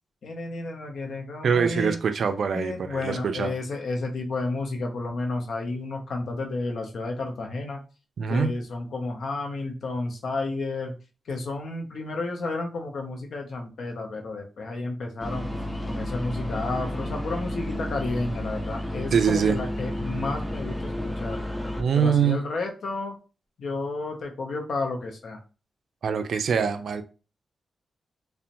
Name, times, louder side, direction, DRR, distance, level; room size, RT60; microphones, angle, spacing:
voice 1, 0.2-2.0 2.5-7.8 8.3-10.9 11.3-15.5 15.9-21.4 21.9-23.2 23.6-25.4, left 3 dB, 70° left, 0.6 m, -31 dB
voice 2, 1.4-3.5 8.2-8.6 19.1-19.6 21.8-22.4 26.0-27.0, right 6 dB, 70° right, 0.3 m, -24 dB
sound 1, 15.2-21.8, left 1 dB, 5° left, 0.5 m, -31 dB
2.8 x 2.0 x 2.5 m
wide cardioid pair, 115°, 0 cm